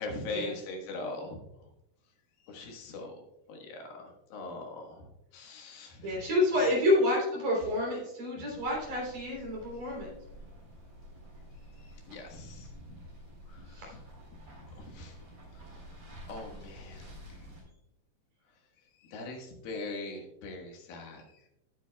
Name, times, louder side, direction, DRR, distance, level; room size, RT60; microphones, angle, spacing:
voice 1, 0.0-1.4 2.4-3.2 3.5-6.3 6.6-6.8 8.5-8.6 11.7-13.1 13.5-14.0 14.7-15.2 15.5-15.7 16.3-17.5 18.8-21.5, left 2 dB, 80° left, 1 dB, 3.4 m, -42 dB
voice 2, 6.0-10.1 13.7-13.9, left 1 dB, 65° right, -2 dB, 5.0 m, -29 dB
sound 1, 8.6-17.6, equal, 35° right, 4.8 m, -50 dB
17.0 x 8.4 x 2.3 m, 0.87 s
omnidirectional pair, 4.1 m